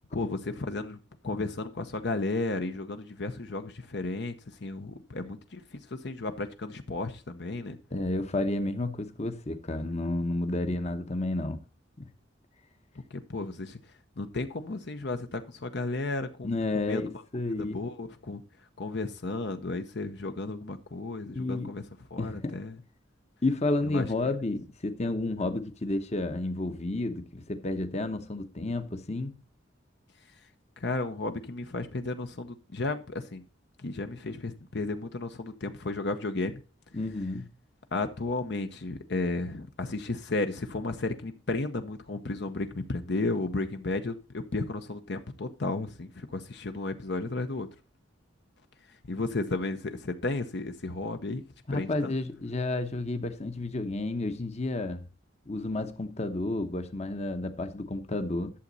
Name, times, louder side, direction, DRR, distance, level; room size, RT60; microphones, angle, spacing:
voice 1, 0.1-1.0 1.2-4.3 4.6-7.8 13.1-13.8 14.2-17.0 17.6-18.4 18.8-21.8 22.1-22.8 23.9-24.1 30.8-33.4 33.8-36.6 37.9-47.7 49.1-51.4 51.7-52.1, left 2 dB, 60° left, 0.8 m, -33 dB
voice 2, 7.9-11.6 12.0-12.1 16.4-17.8 21.2-21.7 22.2-22.6 23.4-29.3 36.9-37.5 51.7-55.0 55.5-58.5, left 2 dB, 35° left, 0.9 m, -31 dB
11.5 x 7.3 x 4.0 m
head